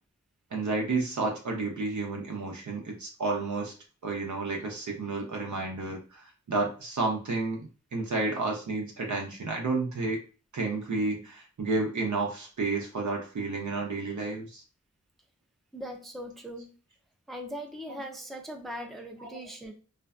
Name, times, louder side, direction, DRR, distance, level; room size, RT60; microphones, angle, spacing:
voice 1, 0.5-3.7 4.0-10.2 10.5-14.6 17.9-18.0 19.2-19.3, right 3 dB, 75° right, 0 dB, 0.6 m, -31 dB
voice 2, 15.7-16.7 17.3-19.7, equal, ahead, 2 dB, 0.5 m, -40 dB
2.5 x 2.1 x 2.4 m, 0.36 s
cardioid pair, 40°, 30 cm